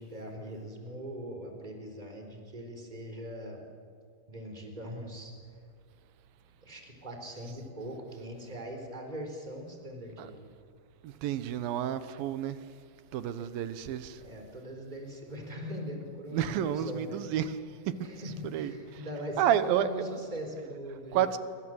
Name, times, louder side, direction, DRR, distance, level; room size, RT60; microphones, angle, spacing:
voice 1, 0.0-3.6 4.3-5.3 6.6-10.4 14.1-17.3 18.0-21.4, equal, 10° right, 3.8 m, -41 dB
voice 2, 11.0-12.6 13.1-14.2 16.3-17.6 17.9-19.9 21.1-21.4, right 10 dB, 75° right, 2.8 m, -30 dB
27.0 x 25.0 x 7.8 m
omnidirectional pair, 4.2 m